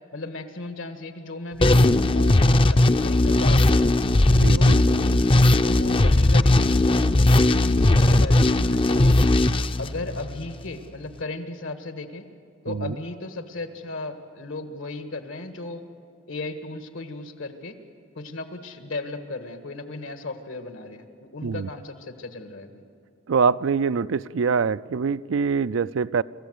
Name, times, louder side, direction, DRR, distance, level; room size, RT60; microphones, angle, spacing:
voice 1, 0.1-3.8 4.6-4.8 5.6-9.2 9.8-12.2 12.6-15.8 16.3-17.8 18.2-22.8, left 2 dB, 80° left, 7 dB, 1.7 m, -36 dB
sound 1, 1.6-10.5, left 2 dB, 25° left, 0.5 m, -18 dB
voice 2, 4.3-5.0 12.7-13.0 21.4-21.7 23.3-26.2, right 5 dB, 80° right, 16 dB, 0.4 m, -24 dB
26.0 x 14.5 x 8.0 m, 2.4 s
head